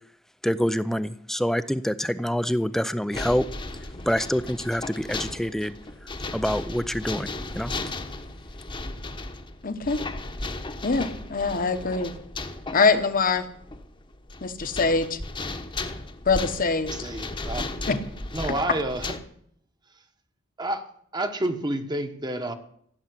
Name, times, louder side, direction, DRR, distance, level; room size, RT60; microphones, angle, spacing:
voice 1, 0.4-3.4 4.1-5.7 6.3-7.3 7.5-7.7, equal, ahead, 14 dB, 0.5 m, -26 dB
sound 1, 3.1-19.2, left 2 dB, 25° left, 1.1 m, -35 dB
voice 2, 9.6-10.0 10.8-12.1 12.7-13.5 14.4-15.2 16.2-16.9 17.9-18.0 18.5-18.6, left 4 dB, 45° left, 10 dB, 1.2 m, -23 dB
voice 3, 17.0-17.6 18.3-19.1 20.6-20.9 21.1-22.5, right 1 dB, 20° right, 7 dB, 1.2 m, -29 dB
16.0 x 7.3 x 9.7 m, 0.67 s
head